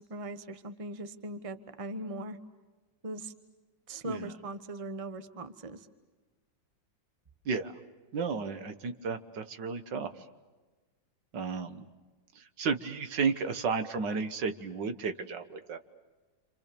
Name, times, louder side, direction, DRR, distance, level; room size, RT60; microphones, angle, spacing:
voice 1, 0.0-2.4 3.0-3.3 3.9-5.9, right 1 dB, 20° right, 11 dB, 1.1 m, -40 dB
voice 2, 8.1-10.1 11.3-11.9 12.4-15.8, right 5 dB, 70° right, 9 dB, 1.9 m, -33 dB
29.0 x 27.5 x 6.9 m, 1.2 s
omnidirectional pair, 2.0 m